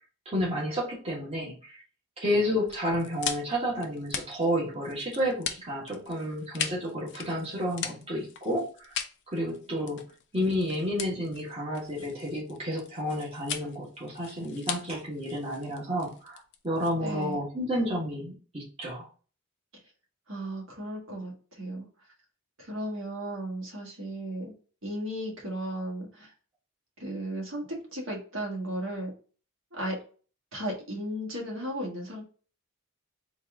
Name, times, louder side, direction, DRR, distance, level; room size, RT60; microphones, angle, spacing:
voice 1, 0.2-1.8 2.2-8.9 9.3-10.0 10.3-16.4 16.6-19.1, equal, 25° right, -4 dB, 1.2 m, -31 dB
sound 1, 2.7-17.3, left 8 dB, 55° left, 0.4 m, -39 dB
voice 2, 16.9-17.4 20.3-21.9 22.6-24.5 24.8-26.3 27.0-29.1 29.7-29.9 30.5-32.2, right 1 dB, 60° right, -1 dB, 1.5 m, -35 dB
3.9 x 2.5 x 3.5 m, 0.38 s
head